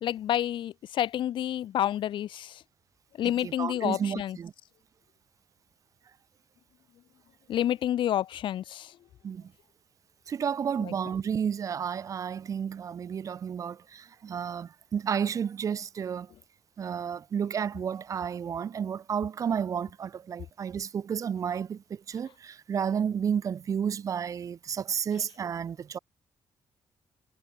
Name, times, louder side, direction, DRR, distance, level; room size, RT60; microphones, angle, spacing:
voice 1, 0.0-2.6 3.2-4.4 7.5-9.0 10.8-10.9, left 11 dB, 55° left, 0.4 m, -29 dB
voice 2, 3.4-4.5 9.2-9.5 10.3-16.3 16.8-26.0, right 7 dB, 35° right, 0.4 m, -31 dB
cardioid pair, 175°, 10 cm